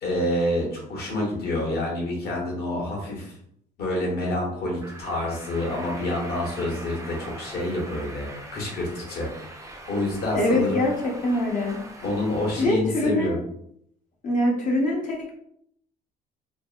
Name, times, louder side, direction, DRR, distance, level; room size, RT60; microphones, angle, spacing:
voice 1, 0.0-3.3 3.8-9.3 9.9-10.8 12.0-13.4, left 1 dB, 65° left, -2 dB, 1.3 m, -27 dB
sound 1, 4.8-12.7, right 1 dB, 20° right, 0.5 m, -42 dB
voice 2, 10.3-11.8 12.6-13.4 14.2-15.3, left 1 dB, 50° left, -1 dB, 0.7 m, -24 dB
3.2 x 2.2 x 2.4 m, 0.69 s
cardioid pair, 110°, 17 cm